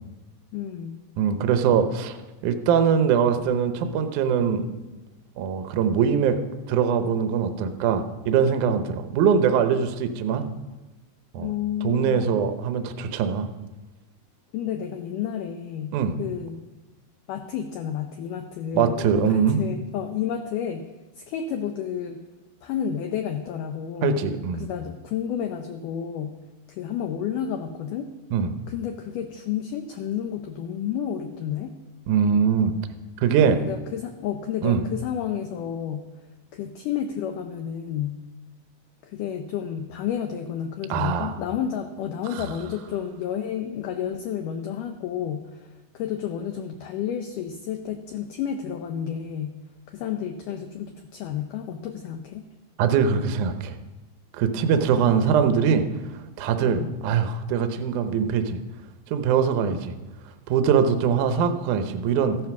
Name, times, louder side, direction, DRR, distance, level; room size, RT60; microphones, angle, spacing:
voice 1, 0.5-1.0 11.4-12.4 14.5-16.6 17.3-20.9 21.2-22.2 22.6-24.3 24.6-26.4 26.7-28.1 28.7-31.7 33.5-36.1 36.5-38.2 39.0-49.6 49.9-52.4 54.9-55.7 56.6-57.0, left 9 dB, 80° left, 6 dB, 1.9 m, -31 dB
voice 2, 1.2-2.2 2.4-4.7 5.4-6.4 6.7-10.5 11.3-11.5 11.8-13.5 15.9-16.1 18.7-19.6 24.0-24.7 28.3-28.5 32.1-32.7 33.2-33.6 34.6-34.8 40.9-41.3 52.8-53.7 54.3-55.8 56.4-58.6 59.1-59.9 60.5-62.4, right 7 dB, 75° right, 8 dB, 1.9 m, -22 dB
14.5 x 9.3 x 5.9 m, 1.1 s
omnidirectional pair, 4.6 m